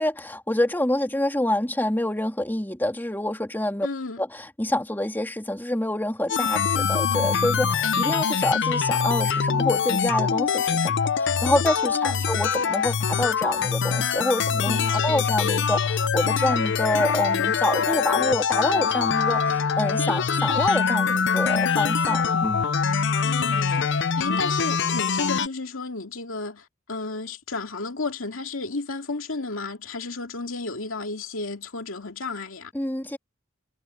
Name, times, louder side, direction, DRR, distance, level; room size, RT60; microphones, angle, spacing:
voice 1, 0.0-3.9 4.2-22.7 32.7-33.2, left 1 dB, 10° left, 2.6 m, -27 dB
voice 2, 3.8-4.2 11.9-12.3 14.7-15.3 23.2-32.7, left 3 dB, 80° left, 2.4 m, -33 dB
sound 1, 6.3-25.5, left 6 dB, 60° left, 0.6 m, -24 dB
head